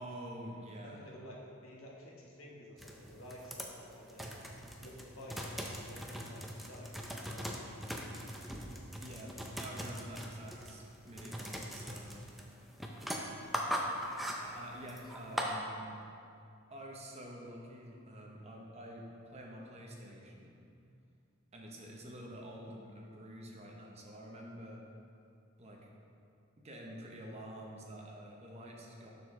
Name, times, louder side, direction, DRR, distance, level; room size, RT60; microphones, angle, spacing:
voice 1, 0.0-1.0 9.0-12.3 14.0-15.9 16.7-20.6 21.5-24.8 25.6-25.9 26.6-29.1, right 1 dB, 30° right, -1 dB, 0.9 m, -48 dB
voice 2, 0.8-4.4 4.8-7.6, left 1 dB, 80° left, -2 dB, 1.2 m, -51 dB
sound 1, 2.8-15.6, equal, ahead, 0.4 m, -41 dB
6.8 x 6.3 x 3.7 m, 2.5 s
head